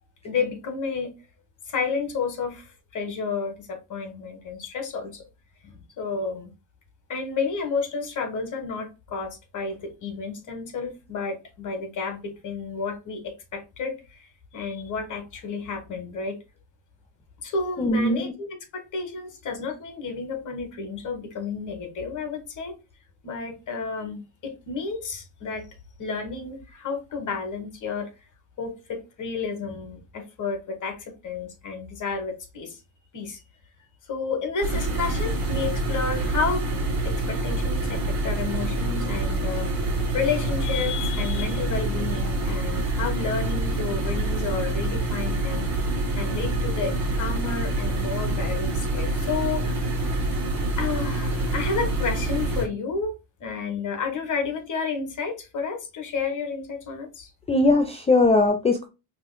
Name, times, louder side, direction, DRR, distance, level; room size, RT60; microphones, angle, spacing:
voice 1, 0.2-1.1 1.7-5.2 5.6-6.5 7.1-16.4 17.4-18.5 18.7-22.7 23.2-25.6 26.0-28.1 28.6-32.8 33.1-33.4 34.1-36.7 37.0-39.7 40.1-45.7 46.2-49.8 50.8-53.1 53.4-57.3, left 5 dB, 40° left, 1.5 m, -31 dB
voice 2, 17.8-18.3 57.5-58.9, left 2 dB, 15° left, 0.4 m, -20 dB
sound 1, 34.6-52.7, right 2 dB, 40° right, 1.8 m, -26 dB
4.8 x 3.2 x 2.2 m
cardioid pair, 105°, 45 cm